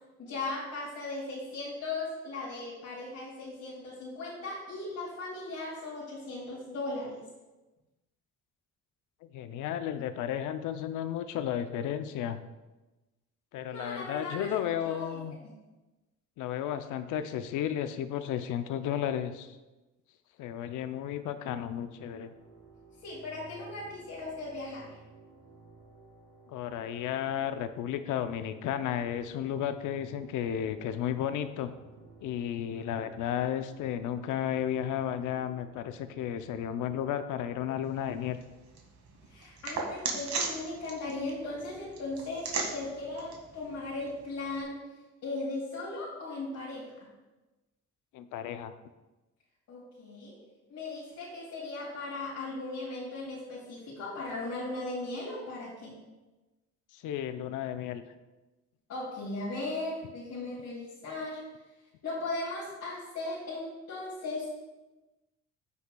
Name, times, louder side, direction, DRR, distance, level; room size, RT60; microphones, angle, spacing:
voice 1, 0.2-7.2 13.7-15.1 23.0-24.9 39.3-44.8 45.2-47.1 49.7-50.4 50.7-56.0 58.9-61.4 62.0-64.5, left 2 dB, 70° left, -8 dB, 2.5 m, -37 dB
voice 2, 9.2-12.4 13.5-15.4 16.4-19.6 20.4-22.3 26.5-31.7 32.2-38.4 48.1-48.7 56.9-58.0, left 10 dB, 85° left, 10 dB, 0.6 m, -33 dB
sound 1, 21.7-37.1, right 4 dB, 90° right, 1.9 m, -55 dB
Arbol destruyendose, 37.8-44.6, right 4 dB, 65° right, 1.9 m, -39 dB
14.0 x 5.6 x 2.3 m, 1.1 s
cardioid pair, 90°, 30 cm